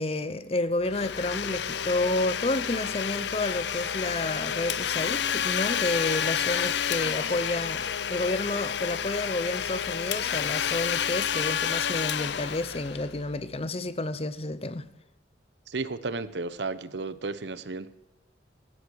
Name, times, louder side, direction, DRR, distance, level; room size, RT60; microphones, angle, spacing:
voice 1, 0.0-14.9, left 2 dB, 30° left, 0.8 m, -30 dB
Domestic sounds home sounds, 0.8-13.4, left 8 dB, 70° left, 0.6 m, -30 dB
voice 2, 15.7-17.9, right 3 dB, 70° right, 0.8 m, -33 dB
16.5 x 13.0 x 4.7 m
head